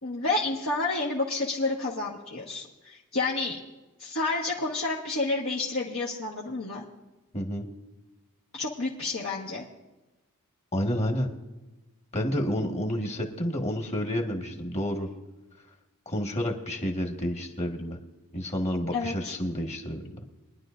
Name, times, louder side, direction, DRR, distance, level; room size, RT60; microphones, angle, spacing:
voice 1, 0.0-3.5 4.0-6.8 8.5-9.6 18.9-19.3, left 3 dB, 65° left, -5 dB, 1.4 m, -30 dB
voice 2, 7.3-7.6 10.7-11.3 12.1-15.1 16.0-18.0 18.3-20.1, equal, 30° left, 3 dB, 1.6 m, -30 dB
23.0 x 11.0 x 2.6 m, 1.1 s
head